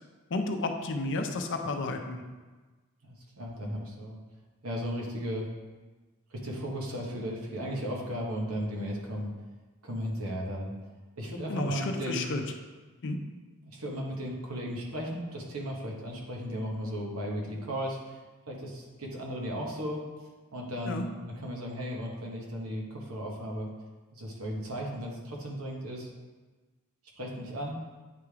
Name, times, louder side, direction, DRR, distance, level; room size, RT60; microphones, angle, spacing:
voice 1, 0.3-2.2 11.5-12.4 13.0-13.2 20.9-21.0, left 2 dB, 55° left, 5 dB, 0.5 m, -32 dB
voice 2, 3.0-4.2 4.6-5.5 6.3-9.3 9.8-10.7 11.2-12.3 13.6-18.2 18.5-20.0 20.5-23.7 24.1-26.1 27.2-27.8, equal, 70° right, -1 dB, 1.2 m, -35 dB
8.9 x 3.5 x 3.3 m, 1.3 s
head